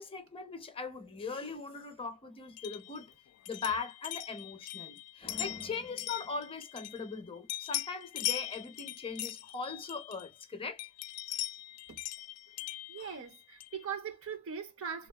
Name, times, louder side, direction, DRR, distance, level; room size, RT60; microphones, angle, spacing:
voice 1, 0.0-3.1 3.5-10.8 13.0-13.2, left 4 dB, 25° left, 0.6 m, -40 dB
sound 1, 2.6-7.2 7.5-10.4 10.8-13.8, left 14 dB, 85° left, 0.3 m, -40 dB
voice 2, 12.9-15.1, right 7 dB, 65° right, 0.7 m, -40 dB
3.5 x 2.3 x 2.2 m
head